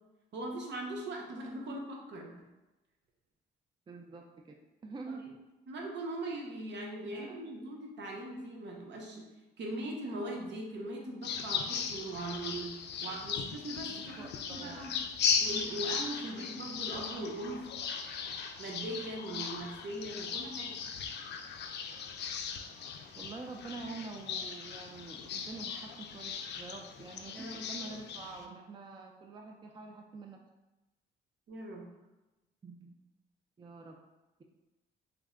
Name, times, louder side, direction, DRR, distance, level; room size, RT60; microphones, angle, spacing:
voice 1, 0.3-2.4 5.7-9.3 9.6-14.9 15.4-17.6 18.6-20.8 27.3-27.6 31.5-31.9, right 1 dB, 65° right, -1 dB, 0.8 m, -40 dB
voice 2, 3.9-4.2 4.8-5.2 7.0-7.3 13.9-14.9 23.2-30.4 32.6-32.9 33.6-33.9, right 3 dB, 25° right, 2 dB, 0.4 m, -46 dB
sound 1, 11.2-28.4, left 6 dB, 60° left, 0.4 m, -38 dB
3.5 x 2.1 x 3.6 m, 1.0 s
cardioid pair, 90°, 20 cm